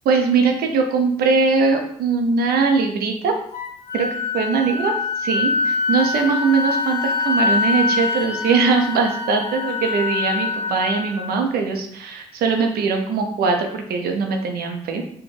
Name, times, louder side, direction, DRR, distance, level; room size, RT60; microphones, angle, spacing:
voice 1, 0.0-3.3 3.9-4.1 4.3-4.9 5.2-15.0, right 4 dB, 75° right, 4 dB, 0.6 m, -21 dB
Wind instrument woodwind instrument, 3.5-11.3, left 4 dB, 65° left, 1.0 m, -24 dB
Wind instrument woodwind instrument 2, 6.0-10.8, left 5 dB, 30° left, 0.6 m, -35 dB
4.2 x 2.2 x 3.3 m, 0.67 s
supercardioid pair, 50°, 16 cm